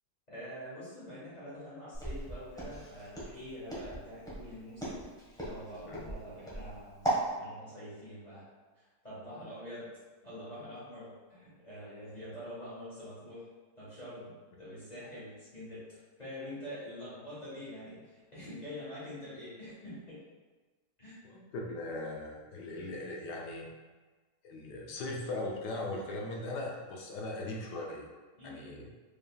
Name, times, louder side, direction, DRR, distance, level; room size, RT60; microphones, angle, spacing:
voice 1, 0.3-5.0 5.4-7.1 7.4-8.4 8.7-9.9 10.2-13.5 13.8-14.3 14.6-20.2 21.0-21.2 28.4-28.8, left 1 dB, 25° left, -11 dB, 1.5 m, -45 dB
Walk footsteps, 1.9-7.3, right 1 dB, 5° left, 1.0 m, -36 dB
voice 2, 21.2-23.7 24.4-28.1 28.4-28.9, left 2 dB, 75° left, -1 dB, 1.3 m, -39 dB
5.1 x 3.4 x 2.3 m, 1.3 s
omnidirectional pair, 1.9 m